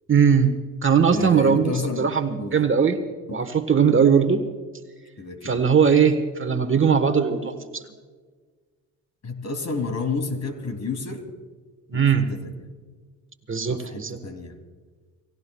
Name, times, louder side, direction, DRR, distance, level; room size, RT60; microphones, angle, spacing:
voice 1, 0.1-0.5 0.8-3.0 3.3-4.4 5.4-7.8 11.9-12.3 13.5-14.2, right 6 dB, 30° right, 8 dB, 1.4 m, -20 dB
voice 2, 1.1-2.1 2.4-2.6 5.2-5.6 9.2-11.2 11.9-12.6 13.7-14.6, left 3 dB, 40° left, 6 dB, 3.0 m, -30 dB
30.0 x 18.0 x 2.4 m, 1.5 s
hypercardioid pair, 55°, 41 cm